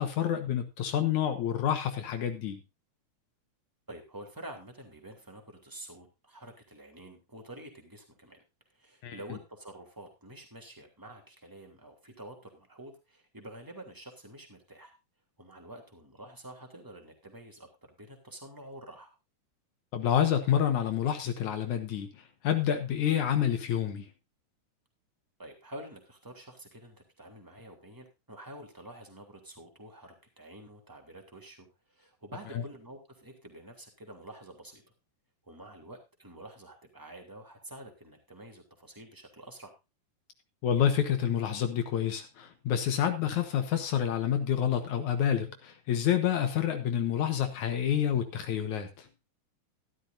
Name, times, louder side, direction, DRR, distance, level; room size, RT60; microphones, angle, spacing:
voice 1, 0.0-2.6 9.0-9.2 19.9-22.1 22.4-24.1 32.5-32.6 40.6-49.1, left 9 dB, 65° left, 7 dB, 2.6 m, -28 dB
voice 2, 3.9-8.4 8.7-14.9 15.4-19.1 25.4-34.8 35.4-39.7, right 1 dB, 5° right, 3 dB, 2.7 m, -48 dB
13.5 x 12.5 x 2.6 m, 0.26 s
omnidirectional pair, 3.8 m